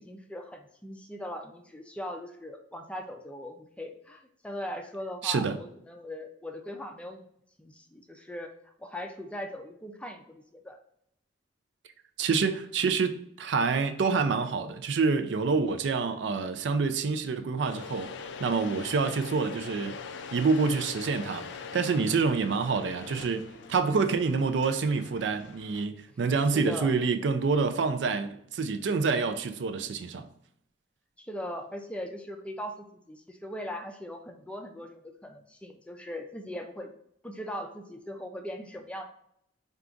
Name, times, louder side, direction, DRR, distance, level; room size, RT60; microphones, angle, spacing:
voice 1, 0.0-7.2 7.6-8.5 8.8-10.8 26.5-26.9 31.2-36.9 37.2-39.0, left 1 dB, 5° left, 0.4 m, -40 dB
voice 2, 5.2-5.6 12.2-18.1 18.4-20.0 20.3-21.5 21.7-30.3, right 4 dB, 70° right, 0.4 m, -27 dB
sound 1, 17.6-25.9, left 5 dB, 70° left, 0.4 m, -43 dB
4.6 x 2.4 x 3.7 m
head